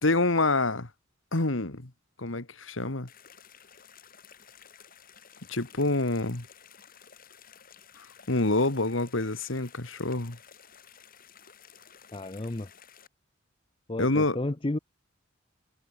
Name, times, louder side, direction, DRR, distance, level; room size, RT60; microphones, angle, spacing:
voice 1, 0.0-0.9 1.3-1.9 2.2-3.1 5.5-6.5 8.0-10.4 14.0-14.4, left 2 dB, 75° left, 2.1 m, -27 dB
sound 1, 3.1-13.1, left 7 dB, 45° left, 6.6 m, -54 dB
voice 2, 12.1-12.7 13.9-14.8, left 2 dB, 25° left, 0.7 m, -32 dB
head